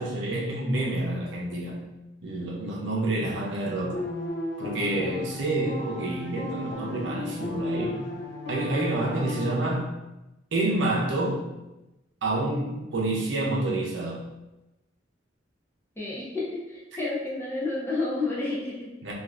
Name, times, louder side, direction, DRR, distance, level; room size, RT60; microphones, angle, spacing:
voice 1, 0.0-1.8 2.2-4.0 4.6-8.0 8.5-9.9 10.5-11.4 12.2-14.2 19.0-19.1, right 2 dB, 70° right, -3 dB, 0.7 m, -28 dB
sound 1, 3.9-9.5, left 2 dB, 60° left, 0.4 m, -34 dB
voice 2, 16.0-18.9, left 2 dB, 10° left, -6 dB, 0.5 m, -30 dB
3.3 x 2.5 x 2.4 m, 0.98 s
head